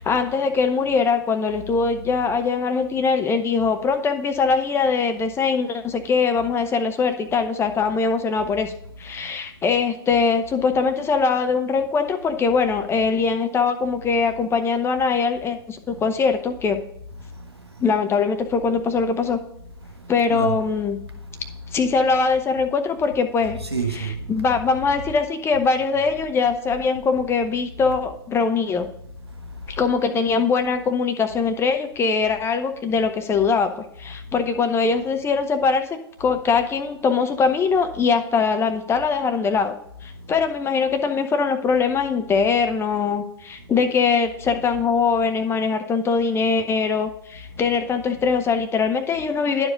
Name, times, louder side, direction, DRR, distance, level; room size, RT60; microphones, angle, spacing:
voice 1, 0.0-8.7 9.0-16.8 17.8-19.4 20.1-21.0 21.7-23.6 24.3-28.9 29.8-39.7 40.0-49.7, left 5 dB, 20° left, 0.9 m, -22 dB
voice 2, 9.1-9.5 15.9-16.0 17.2-17.9 19.8-20.6 21.1-21.8 23.5-24.6 24.9-25.0 29.3-29.8 34.1-34.3 40.1-40.3 43.5-43.7 47.5-47.6, right 3 dB, 90° right, 1.3 m, -33 dB
10.5 x 4.9 x 5.1 m
figure-of-eight pair, 100°, 13 cm